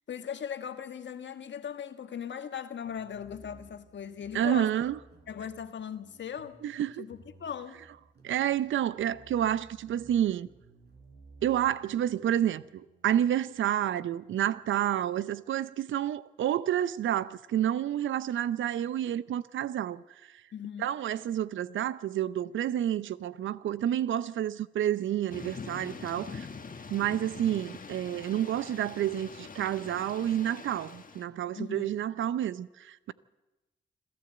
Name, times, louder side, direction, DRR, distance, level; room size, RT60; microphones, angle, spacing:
voice 1, 0.1-4.7 5.3-6.6 7.0-7.8 20.5-20.9 31.5-31.9, left 8 dB, 65° left, 1.5 m, -39 dB
sound 1, 2.8-15.7, right 3 dB, 55° right, 4.2 m, -58 dB
voice 2, 4.3-5.0 6.6-7.0 8.2-10.5 11.4-20.0 20.8-26.5 26.9-33.1, right 11 dB, 75° right, 0.7 m, -29 dB
Thunder / Rain, 25.3-31.2, left 5 dB, 40° left, 1.6 m, -44 dB
26.5 x 13.0 x 7.9 m
supercardioid pair, 45°, 20 cm